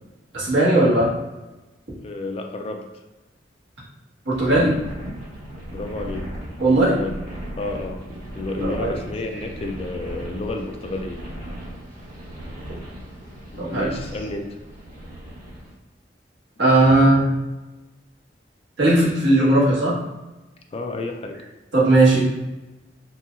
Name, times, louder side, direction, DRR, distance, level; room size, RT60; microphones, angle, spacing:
voice 1, 0.3-1.1 4.2-4.8 6.6-7.0 8.6-9.0 9.4-9.5 13.6-14.0 16.6-17.4 18.8-20.0 21.7-22.2, right 2 dB, 75° right, -7 dB, 1.3 m, -17 dB
voice 2, 2.0-2.8 5.7-6.3 6.6-7.2 7.6-11.2 13.5-14.6 20.7-21.4, left 2 dB, 35° left, 4 dB, 0.3 m, -31 dB
sound 1, 4.3-15.7, equal, 50° right, 1.2 m, -37 dB
4.1 x 2.8 x 2.4 m, 1.1 s
head